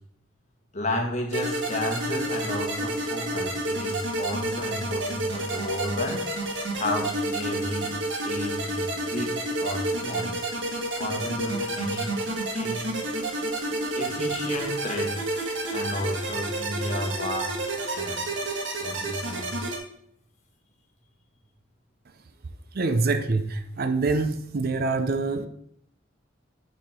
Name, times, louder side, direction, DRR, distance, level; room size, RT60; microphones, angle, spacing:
voice 1, 0.7-6.2 6.8-10.3 11.0-12.1 12.5-12.9 13.9-15.4 15.7-17.6 17.9-18.3 18.8-19.7, left 1 dB, 40° left, 1 dB, 1.6 m, -32 dB
sound 1, 1.3-19.8, right 1 dB, 75° right, 1.4 m, -30 dB
voice 2, 22.7-25.5, right 3 dB, 55° right, 10 dB, 0.5 m, -25 dB
8.8 x 4.2 x 4.3 m, 0.70 s
head